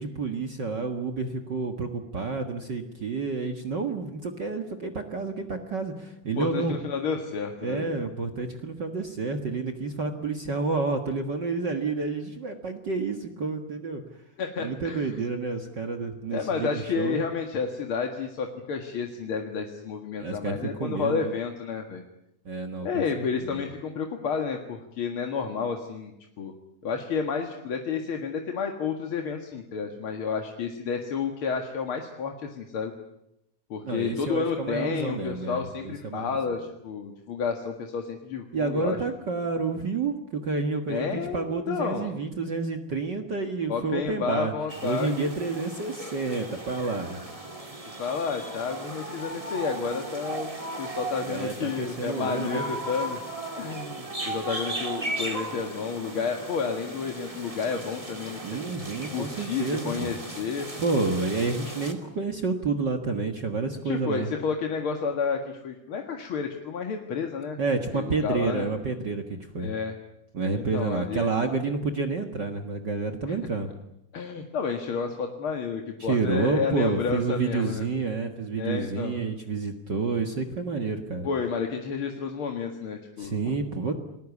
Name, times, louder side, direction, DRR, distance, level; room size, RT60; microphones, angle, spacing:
voice 1, 0.0-6.8 7.6-14.0 14.6-17.2 20.2-21.3 22.4-23.6 33.8-36.4 38.5-44.5 44.8-47.2 51.2-52.7 58.4-60.1 60.8-64.3 67.6-69.7 70.3-73.7 76.0-81.3 83.2-83.9, right 4 dB, 40° right, 5 dB, 1.8 m, -29 dB
voice 2, 6.4-8.0 14.4-15.2 16.3-22.0 22.8-26.5 26.8-32.9 33.7-39.0 40.9-42.1 43.7-45.3 48.0-50.5 50.8-53.2 53.6-58.6 59.1-60.7 63.9-67.6 67.9-68.7 69.6-70.0 70.5-71.3 74.1-77.8 78.6-79.2 81.2-83.5, left 5 dB, 50° left, 4 dB, 2.3 m, -31 dB
sound 1, 44.7-61.9, right 1 dB, 10° right, 2.3 m, -37 dB
29.0 x 20.0 x 8.4 m, 0.83 s
omnidirectional pair, 3.6 m